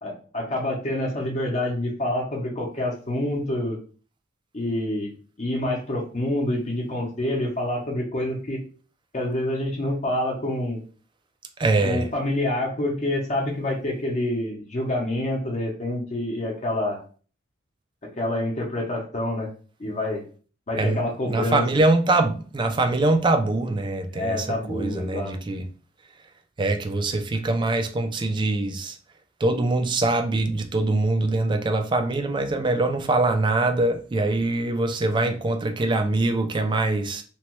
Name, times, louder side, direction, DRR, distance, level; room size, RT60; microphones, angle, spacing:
voice 1, 0.0-3.8 4.5-5.1 5.4-8.6 9.1-10.8 11.8-17.0 18.2-19.5 19.8-20.2 20.7-21.6 24.1-25.3, left 1 dB, 40° left, 0.7 m, -27 dB
voice 2, 11.6-12.1 20.8-25.7 26.6-29.0 29.4-37.2, right 2 dB, 25° right, 0.3 m, -23 dB
2.9 x 2.2 x 2.9 m
head